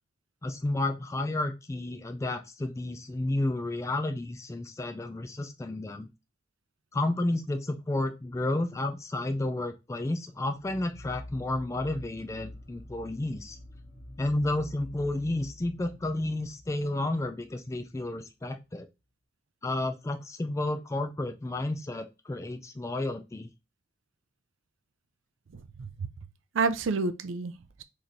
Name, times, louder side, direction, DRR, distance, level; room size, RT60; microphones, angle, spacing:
voice 1, 0.4-6.1 6.9-13.6 14.2-18.9 19.6-23.5, left 2 dB, 15° left, 0.3 m, -31 dB
sound 1, 10.5-17.9, left 1 dB, 40° left, 1.1 m, -47 dB
voice 2, 25.5-26.1 26.5-27.8, right 4 dB, 85° right, 0.5 m, -30 dB
4.1 x 3.1 x 2.6 m
head